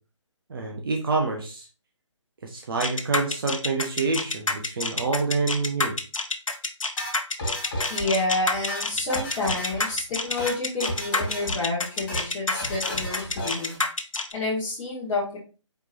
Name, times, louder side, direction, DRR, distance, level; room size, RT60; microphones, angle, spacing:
voice 1, 0.5-1.7 2.4-6.0, right 3 dB, 45° right, 1 dB, 0.9 m, -27 dB
sound 1, 2.8-14.3, left 3 dB, 85° left, 0.8 m, -27 dB
sound 2, 7.0-8.2 8.5-9.9 10.2-10.6 10.8-11.6 11.9-12.2 12.5-13.8, left 1 dB, 35° left, 2.8 m, -33 dB
voice 2, 7.9-13.8 14.3-15.4, left 2 dB, 20° left, -10 dB, 1.5 m, -29 dB
4.5 x 4.5 x 2.6 m, 0.34 s
figure-of-eight pair, 150°, 16 cm